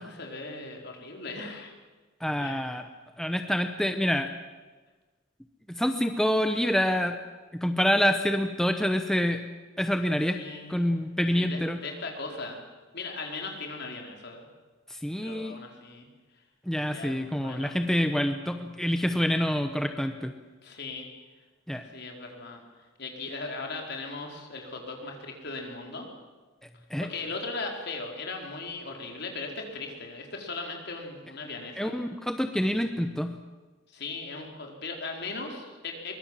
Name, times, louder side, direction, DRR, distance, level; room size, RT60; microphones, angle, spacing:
voice 1, 0.0-1.7 2.4-2.6 10.3-10.9 11.3-12.6 12.9-14.5 15.2-16.1 16.9-17.7 20.6-21.1 21.9-22.6 23.0-26.1 27.0-32.0 33.9-36.1, left 3 dB, 55° left, 2 dB, 4.5 m, -38 dB
voice 2, 2.2-2.8 3.2-4.3 5.7-7.2 7.5-9.4 9.8-10.4 10.7-11.8 14.9-15.5 16.7-20.3 21.7-21.8 26.9-27.1 31.8-33.4, equal, 5° left, 6 dB, 0.9 m, -27 dB
23.5 x 22.0 x 7.5 m, 1.3 s
head